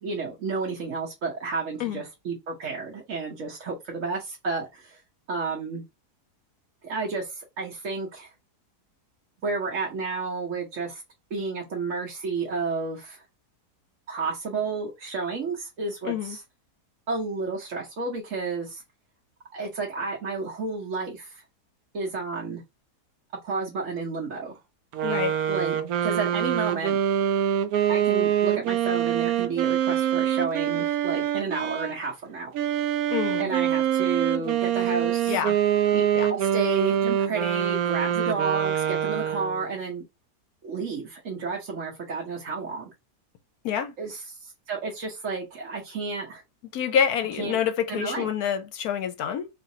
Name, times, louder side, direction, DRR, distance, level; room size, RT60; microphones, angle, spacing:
voice 1, 0.0-5.0 5.3-5.8 6.8-8.3 9.4-11.0 11.3-13.2 14.1-16.4 17.1-18.8 19.5-21.4 21.9-22.6 23.4-24.6 25.5-27.0 27.9-32.5 33.4-35.4 35.9-40.0 40.6-42.9 44.0-46.4 47.4-47.6 47.9-48.3, right 4 dB, 55° right, 1.3 m, -31 dB
voice 2, 16.0-16.4 25.0-25.4 33.1-33.5 35.3-35.5 36.1-36.3 43.6-43.9 46.7-49.5, left 8 dB, 75° left, 1.1 m, -27 dB
sound 1, 24.9-32.0 32.5-39.7, right 10 dB, 75° right, 1.0 m, -25 dB
3.8 x 3.2 x 2.7 m
omnidirectional pair, 1.7 m